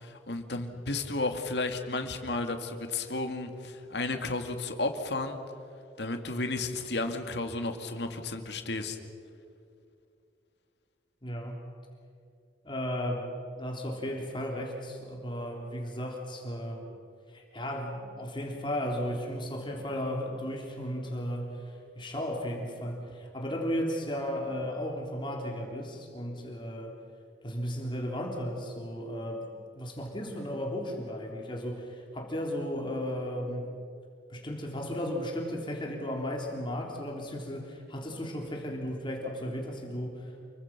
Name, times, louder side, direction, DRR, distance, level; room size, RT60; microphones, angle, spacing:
voice 1, 0.0-5.4 6.0-9.0, left 2 dB, 70° left, 6 dB, 2.3 m, -33 dB
voice 2, 11.2-11.7 12.6-13.3 13.6-16.8 17.3-26.9 27.4-29.5 29.8-33.7 34.3-40.4, equal, 25° left, 0 dB, 3.5 m, -35 dB
29.0 x 23.5 x 6.1 m, 2.6 s
head